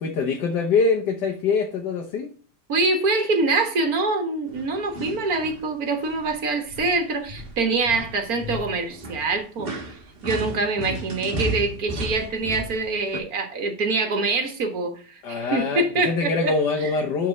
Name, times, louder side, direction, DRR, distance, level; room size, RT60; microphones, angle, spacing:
voice 1, 0.0-2.3 15.2-17.3, left 4 dB, 85° left, 1.6 m, -24 dB
voice 2, 2.7-9.7 10.2-16.9, right 3 dB, 60° right, 1.9 m, -25 dB
sound 1, 4.5-5.6 6.0-6.4 6.7-13.2, equal, 35° right, 1.4 m, -34 dB
9.5 x 4.4 x 3.9 m
omnidirectional pair, 1.8 m